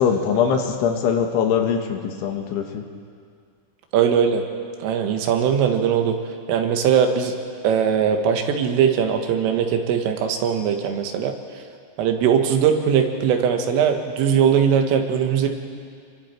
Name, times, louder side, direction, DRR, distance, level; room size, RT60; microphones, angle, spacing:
voice 1, 0.0-2.8, left 7 dB, 75° left, 4 dB, 3.8 m, -22 dB
voice 2, 3.9-4.4 4.8-6.2 6.5-7.3 7.6-11.3 12.0-15.5, right 7 dB, 90° right, 4 dB, 4.1 m, -20 dB
29.0 x 23.0 x 4.6 m, 2.2 s
omnidirectional pair, 5.7 m